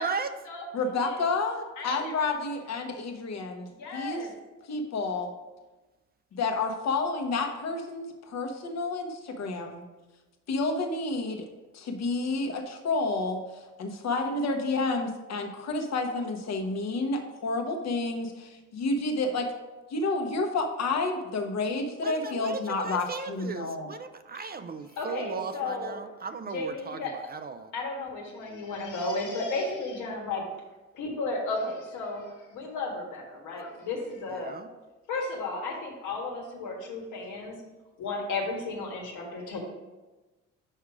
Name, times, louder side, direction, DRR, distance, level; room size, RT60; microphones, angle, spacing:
voice 1, 0.0-0.3 22.0-27.7 34.3-34.7, right 5 dB, 30° right, 9 dB, 0.4 m, -37 dB
voice 2, 0.7-4.3 4.7-5.3 6.3-9.8 10.5-11.5 11.7-19.5 19.9-23.9 33.6-33.7, left 3 dB, 60° left, 4 dB, 1.1 m, -30 dB
voice 3, 1.8-2.3 3.7-4.3 25.0-26.0 26.5-27.1 27.7-30.4 30.9-34.5 35.1-37.5 38.0-39.6, left 3 dB, 85° left, 0 dB, 1.5 m, -34 dB
5.6 x 4.8 x 4.8 m, 1.2 s
cardioid pair, 90°, 30 cm